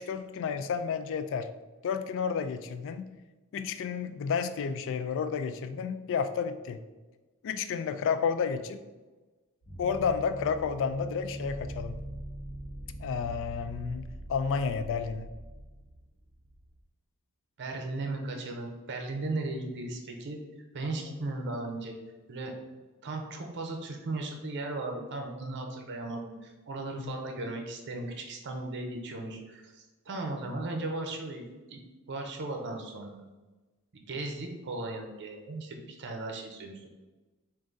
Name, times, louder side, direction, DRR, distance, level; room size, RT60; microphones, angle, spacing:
voice 1, 0.0-1.5 1.8-3.1 3.5-6.8 7.4-8.8 9.8-12.0 13.0-15.3 26.9-27.2, left 6 dB, 60° left, 11 dB, 0.3 m, -31 dB
sound 1, 9.6-16.8, right 1 dB, 80° left, 1.1 m, -42 dB
voice 2, 17.6-20.4 20.7-21.9 22.3-22.5 23.0-31.4 31.7-31.8 32.1-33.2 33.9-36.9, right 2 dB, 55° right, 3 dB, 0.6 m, -36 dB
3.8 x 2.5 x 3.7 m, 1.2 s
head